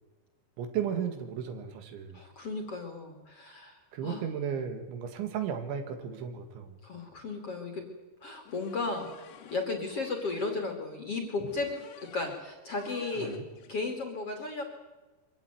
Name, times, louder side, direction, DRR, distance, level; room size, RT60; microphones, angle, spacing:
voice 1, 0.6-2.2 3.9-6.8 13.2-13.4, right 8 dB, 75° right, 8 dB, 4.2 m, -34 dB
voice 2, 2.1-4.2 6.8-7.8 8.2-11.7 12.0-13.3 13.7-14.6, left 3 dB, 40° left, 4 dB, 2.7 m, -35 dB
sound 1, 8.5-10.6 11.5-12.4 12.7-13.7, left 9 dB, 90° left, 4.5 m, -50 dB
24.5 x 16.0 x 9.5 m, 1.2 s
omnidirectional pair, 5.6 m